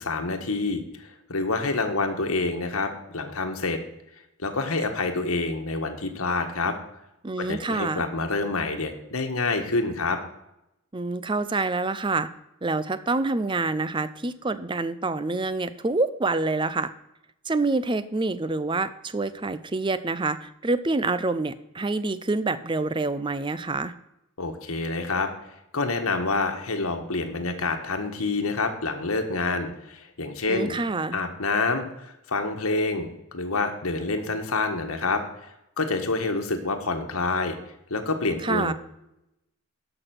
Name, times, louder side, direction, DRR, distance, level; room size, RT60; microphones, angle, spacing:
voice 1, 0.0-3.8 4.4-6.7 7.4-10.2 24.4-25.3 25.7-30.7 31.1-35.2 35.8-37.6 37.9-38.7, left 3 dB, 75° left, 5 dB, 1.5 m, -27 dB
voice 2, 7.2-8.1 10.9-12.3 12.6-16.9 17.5-23.9 30.5-31.2 38.4-38.7, right 3 dB, 20° right, 14 dB, 0.5 m, -27 dB
12.0 x 6.1 x 6.0 m, 0.85 s
head